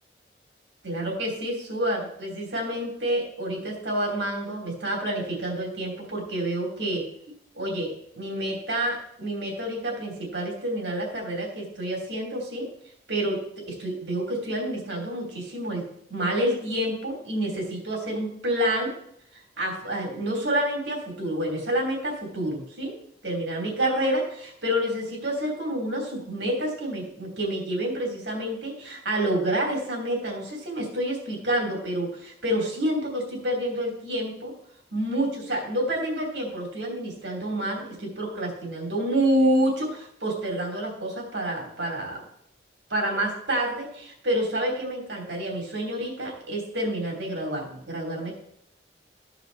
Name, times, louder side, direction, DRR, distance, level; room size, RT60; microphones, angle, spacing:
voice 1, 0.8-7.0 7.5-12.7 13.1-13.4 13.7-15.8 16.1-18.9 19.6-22.9 23.2-34.5 34.9-42.2 42.9-48.3, right 1 dB, 85° right, 0 dB, 3.1 m, -28 dB
14.0 x 5.0 x 4.0 m, 0.70 s
head